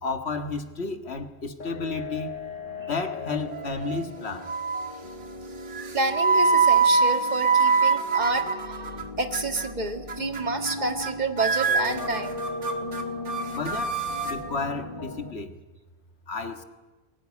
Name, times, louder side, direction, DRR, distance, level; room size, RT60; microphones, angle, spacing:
voice 1, 0.0-2.4 2.9-4.5 13.5-15.5 16.3-16.6, left 3 dB, 65° left, 7 dB, 1.9 m, -32 dB
sound 1, 1.6-15.3, left 3 dB, 45° left, 1.6 m, -38 dB
sound 2, 3.5-4.1 4.5-5.0 5.7-9.0 9.3-9.7 10.1-10.4 10.7-11.1 11.4-14.4, right 4 dB, 75° right, 2.0 m, -24 dB
voice 2, 5.9-12.4, right 3 dB, 40° right, 6 dB, 1.9 m, -29 dB
22.5 x 18.5 x 9.6 m, 1.2 s
omnidirectional pair, 1.2 m